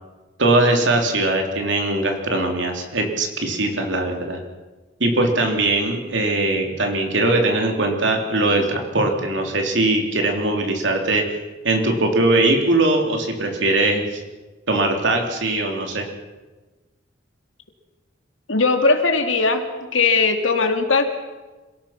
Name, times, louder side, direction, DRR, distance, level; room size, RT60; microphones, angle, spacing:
voice 1, 0.4-4.4 5.0-11.3 11.6-14.2 14.7-16.0, right 2 dB, 70° right, 3 dB, 3.4 m, -20 dB
voice 2, 18.5-19.7 19.9-21.1, left 4 dB, 80° left, 5 dB, 2.5 m, -18 dB
27.0 x 17.5 x 6.0 m, 1.2 s
head